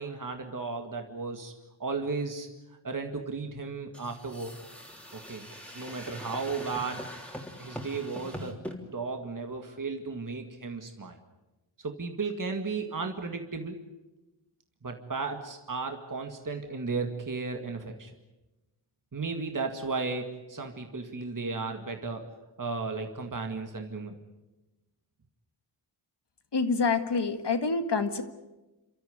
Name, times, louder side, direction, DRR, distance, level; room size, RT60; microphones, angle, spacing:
voice 1, 0.0-1.5 1.8-2.5 2.8-4.5 5.1-5.5 5.7-7.0 7.6-8.6 8.9-11.2 11.8-13.8 14.8-18.1 19.1-22.2 22.6-24.2, right 4 dB, 40° right, 5 dB, 2.0 m, -34 dB
sound 1, 3.9-8.8, equal, 5° left, 3.3 m, -42 dB
voice 2, 26.5-28.2, left 4 dB, 60° left, 9 dB, 1.8 m, -27 dB
30.0 x 13.5 x 9.5 m, 1.1 s
wide cardioid pair, 95°, 47 cm